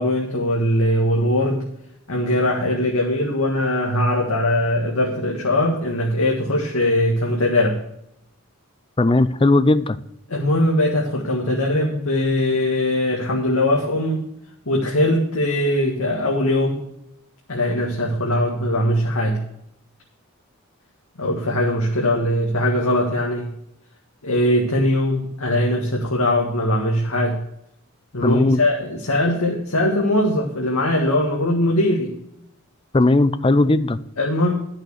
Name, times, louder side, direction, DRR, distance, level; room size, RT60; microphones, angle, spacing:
voice 1, 0.0-1.6 2.1-7.8 10.3-14.3 14.7-16.8 17.5-19.4 21.2-23.5 24.2-27.4 28.1-32.1 34.2-34.5, left 1 dB, 80° left, -2 dB, 1.8 m, -21 dB
voice 2, 9.0-10.0 28.2-28.6 32.9-34.0, left 2 dB, 25° left, 14 dB, 0.4 m, -17 dB
11.0 x 6.5 x 6.5 m, 0.76 s
head